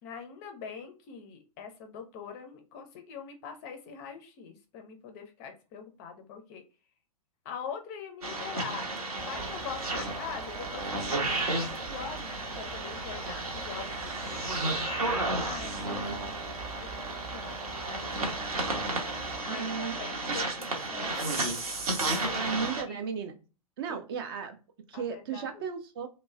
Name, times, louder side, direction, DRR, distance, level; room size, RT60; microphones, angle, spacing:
voice 1, 0.0-6.6 7.4-8.9 9.2-14.8 15.3-18.5 19.4-21.4 22.0-23.0 23.9-24.0 24.9-25.6, left 6 dB, 25° left, 5 dB, 0.4 m, -43 dB
sound 1, 8.2-22.8, right 2 dB, 70° right, 0.8 m, -33 dB
sound 2, 9.2-19.4, right 2 dB, 85° right, 1.2 m, -44 dB
voice 2, 15.8-16.2 19.5-20.0 22.3-23.3 23.8-24.6 24.9-26.1, right 6 dB, 40° right, 7 dB, 0.4 m, -35 dB
3.0 x 2.0 x 2.3 m, 0.33 s
figure-of-eight pair, 110°, 20 cm